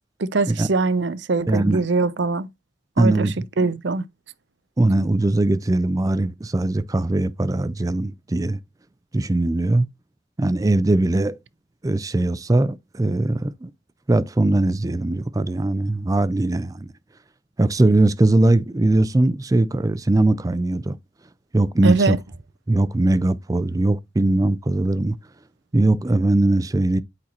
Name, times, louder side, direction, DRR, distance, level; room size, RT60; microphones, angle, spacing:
voice 1, 0.2-2.5 3.0-4.1 21.8-22.2, right 3 dB, 65° right, 0.6 m, -22 dB
voice 2, 1.5-1.8 3.0-3.3 4.8-8.6 9.1-9.9 10.4-11.4 11.8-13.7 14.1-16.9 17.6-21.0 21.5-22.2 22.7-25.2 25.7-27.0, right 2 dB, 20° right, 0.4 m, -20 dB
8.6 x 5.3 x 2.9 m
head